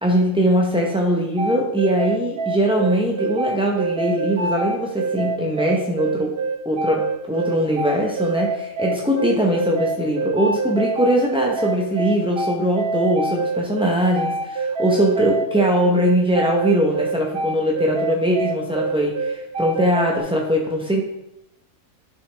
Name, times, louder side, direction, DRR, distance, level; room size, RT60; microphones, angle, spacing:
voice 1, 0.0-6.4 6.6-21.0, equal, 10° right, -2 dB, 0.4 m, -21 dB
sound 1, 1.4-20.2, right 3 dB, 50° right, 0.8 m, -25 dB
11.5 x 5.4 x 3.3 m, 0.86 s
omnidirectional pair, 1.6 m